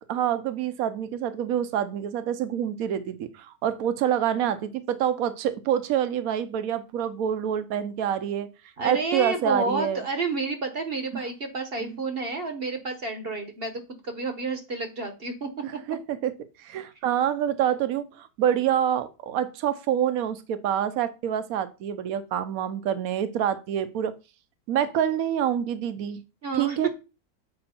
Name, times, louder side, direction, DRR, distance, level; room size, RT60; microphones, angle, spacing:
voice 1, 0.1-8.5 8.8-10.0 11.1-11.2 11.8-12.0 15.6-16.3 16.6-24.1 24.7-26.2 26.5-26.9, right 9 dB, 70° right, 13 dB, 1.1 m, -27 dB
voice 2, 8.8-15.5 26.4-26.8, right 3 dB, 45° right, 6 dB, 1.0 m, -30 dB
7.8 x 4.8 x 4.2 m, 0.30 s
omnidirectional pair, 1.7 m